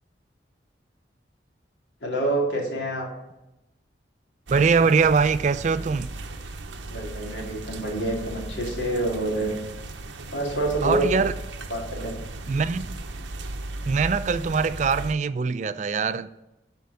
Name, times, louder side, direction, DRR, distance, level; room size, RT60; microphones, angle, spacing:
voice 1, 2.0-3.1 6.9-9.6 10.3-11.2 11.7-12.1, right 1 dB, 85° left, 2.5 m, -27 dB
voice 2, 4.5-6.1 10.8-11.3 12.5-12.9 13.9-16.3, right 5 dB, 40° right, 0.3 m, -22 dB
sound 1, 4.5-15.1, right 2 dB, 90° right, 0.8 m, -36 dB
10.5 x 4.5 x 5.6 m
head